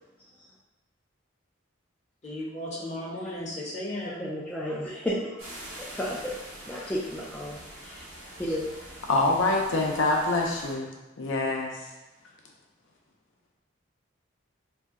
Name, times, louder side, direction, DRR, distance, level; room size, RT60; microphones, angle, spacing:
voice 1, 2.2-4.4, left 1 dB, 35° left, -5 dB, 0.7 m, -35 dB
voice 2, 4.0-5.4 5.8-6.3 6.6-8.0 8.4-8.7, equal, 5° left, -6 dB, 0.3 m, -33 dB
sound 1, 5.4-10.7, right 1 dB, 80° right, 1.1 m, -44 dB
voice 3, 9.1-10.9 11.2-11.7, left 2 dB, 70° left, 0 dB, 0.5 m, -25 dB
2.7 x 2.1 x 3.5 m, 1.1 s
head